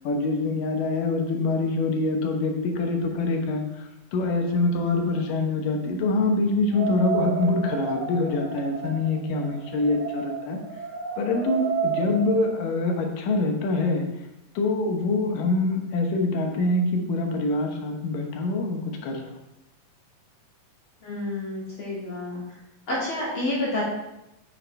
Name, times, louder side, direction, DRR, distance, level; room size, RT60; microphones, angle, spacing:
voice 1, 0.0-10.6 11.2-14.0 14.5-19.3, left 2 dB, 90° left, 2 dB, 2.8 m, -25 dB
sound 1, 6.7-12.4, right 7 dB, 60° right, 3.2 m, -31 dB
voice 2, 21.0-22.6 22.9-23.8, left 2 dB, 40° left, -7 dB, 2.8 m, -29 dB
8.6 x 7.5 x 3.3 m, 0.91 s
omnidirectional pair, 3.7 m